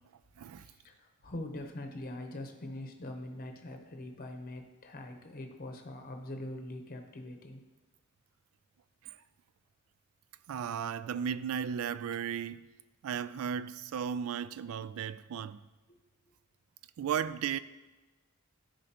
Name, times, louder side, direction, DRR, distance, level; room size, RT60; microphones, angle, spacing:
voice 1, 0.6-7.6 15.9-16.0, left 1 dB, 40° left, 0.8 m, -43 dB
voice 2, 10.5-12.6 13.0-15.6 17.0-17.6, right 8 dB, 75° right, 0.3 m, -35 dB
12.0 x 5.2 x 2.9 m
head